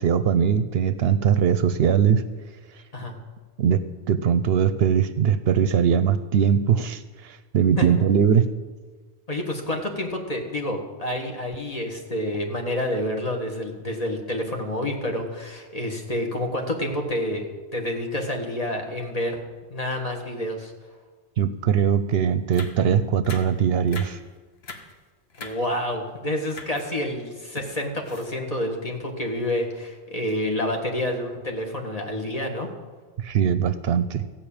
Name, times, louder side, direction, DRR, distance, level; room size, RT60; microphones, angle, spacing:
voice 1, 0.0-2.2 3.6-8.5 21.4-24.2 33.2-34.2, right 8 dB, 70° right, 13 dB, 0.8 m, -21 dB
voice 2, 9.3-17.5 17.7-19.4 19.7-20.7 25.4-32.7, left 1 dB, 35° left, 2 dB, 1.6 m, -28 dB
sound 1, 22.0-22.1 22.5-22.9 23.2-23.6 23.9-24.3 24.5-24.9 25.3-25.9 26.4-26.9 27.3-28.6 29.1-29.3 29.6-29.8, left 3 dB, 65° left, 1.3 m, -41 dB
14.5 x 5.6 x 8.7 m, 1.4 s
omnidirectional pair, 1.1 m